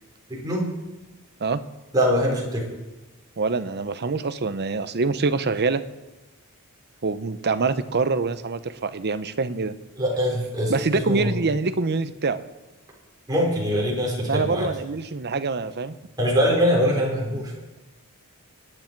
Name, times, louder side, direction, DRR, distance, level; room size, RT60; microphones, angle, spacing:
voice 1, 0.3-0.7 1.9-2.7 10.0-10.8 11.0-11.3 13.3-14.7 16.2-17.5, equal, 20° right, -3 dB, 4.2 m, -23 dB
voice 2, 3.4-5.8 7.0-9.7 10.7-12.4 14.3-15.9, right 4 dB, 50° right, 12 dB, 0.8 m, -25 dB
24.0 x 9.8 x 4.6 m, 1.1 s
head